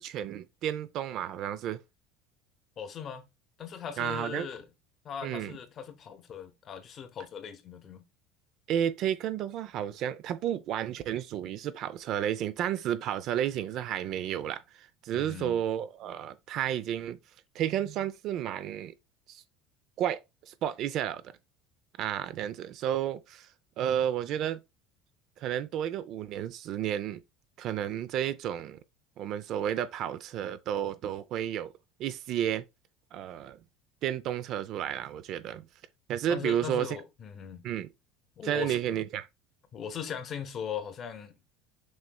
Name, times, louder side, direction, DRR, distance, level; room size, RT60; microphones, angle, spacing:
voice 1, 0.0-1.8 4.0-4.5 5.2-5.6 8.7-17.2 17.5-18.9 19.3-19.4 20.0-21.2 22.0-23.5 23.8-24.6 25.4-27.2 27.6-28.8 29.2-31.7 32.0-32.6 33.1-33.6 34.0-35.7 36.1-37.0 37.6-37.9 38.4-39.3, right 10 dB, 55° right, 0.5 m, -32 dB
voice 2, 2.8-3.2 3.6-4.7 5.0-8.0 15.1-15.6 36.3-37.6 38.4-39.0 39.7-41.4, left 7 dB, 40° left, 0.9 m, -39 dB
6.3 x 3.1 x 2.3 m
supercardioid pair, 100°, 0 cm